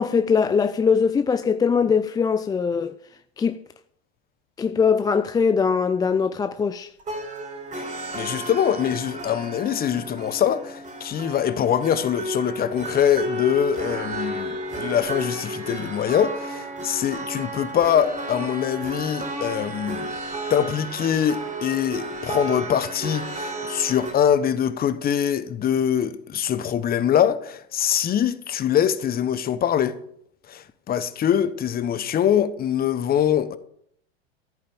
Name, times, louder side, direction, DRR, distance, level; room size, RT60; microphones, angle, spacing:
voice 1, 0.0-2.9 3.4-3.6 4.6-6.9, left 6 dB, 15° left, 0.4 m, -21 dB
sound 1, 7.0-24.1, right 1 dB, 25° right, 4.1 m, -33 dB
voice 2, 8.1-20.1 20.5-30.0 30.5-33.6, left 9 dB, 30° left, 1.2 m, -23 dB
14.0 x 8.6 x 7.2 m
hypercardioid pair, 95°, 31 cm